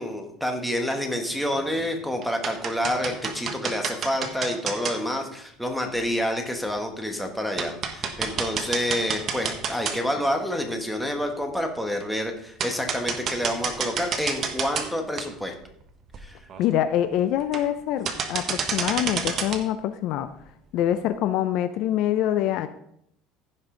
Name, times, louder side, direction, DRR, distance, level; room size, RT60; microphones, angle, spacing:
voice 1, 0.0-15.5 16.2-16.4, equal, ahead, 3 dB, 1.4 m, -28 dB
sound 1, 1.5-1.9 2.2-5.0 6.1-6.2 6.7-6.8 7.2-7.3 7.6-10.3 10.7-10.8 12.0-12.1 12.6-14.9 15.2-15.3 15.8-15.9 16.1-16.2 16.5-16.8 17.4-17.8 18.1-19.6, right 6 dB, 40° right, 1.2 m, -29 dB
voice 2, 16.6-20.3 20.7-22.7, left 11 dB, 60° left, 11 dB, 0.5 m, -25 dB
15.5 x 5.4 x 3.9 m, 0.72 s
cardioid pair, 135°, 0 cm